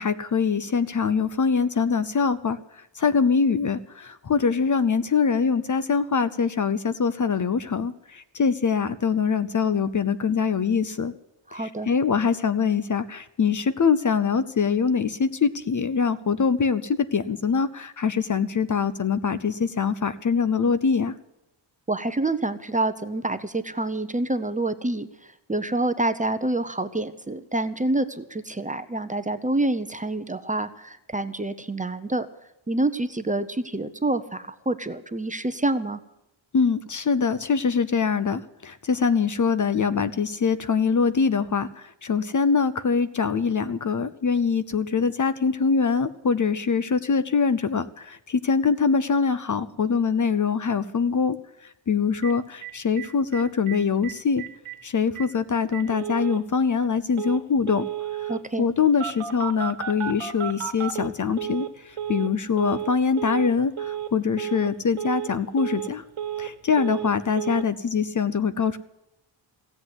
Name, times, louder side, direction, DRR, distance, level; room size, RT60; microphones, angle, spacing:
voice 1, 0.0-11.1 11.5-21.1 36.5-51.4 51.6-54.4 54.8-57.9 58.2-58.3 58.6-66.0 66.4-68.8, left 5 dB, 40° left, 14 dB, 0.7 m, -23 dB
voice 2, 11.5-11.9 21.9-32.3 32.7-36.0 58.3-58.7, right 2 dB, 15° right, 10 dB, 0.7 m, -27 dB
Telephone, 52.2-52.3 52.6-52.7 53.0-53.1 53.3-53.8 54.0-54.1 54.4-54.8 55.2-55.3 55.7-56.4 57.2-57.4 57.7-58.4 59.0-61.7 62.0-62.3 62.6-62.9 63.2-63.5 63.8-64.1 64.4-64.7 65.0-65.3 65.6-66.5 66.8-67.1 67.4-67.6, right 10 dB, 85° right, 1.6 m, -32 dB
16.5 x 8.1 x 9.7 m, 0.89 s
wide cardioid pair, 120°, 49 cm